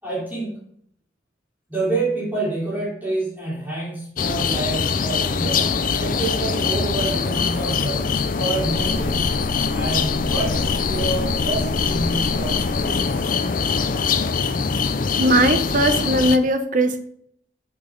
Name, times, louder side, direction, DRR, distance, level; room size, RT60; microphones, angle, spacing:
voice 1, 0.0-0.6 1.7-8.0 8.4-9.3 9.7-13.3, right 2 dB, 10° right, -9 dB, 3.4 m, -28 dB
sound 1, 4.2-16.4, left 5 dB, 45° left, 0.4 m, -23 dB
sound 2, 8.5-13.4, equal, 70° left, 2.1 m, -33 dB
voice 2, 15.2-17.0, right 1 dB, 40° right, 8 dB, 0.7 m, -19 dB
8.1 x 6.8 x 3.7 m, 0.67 s
head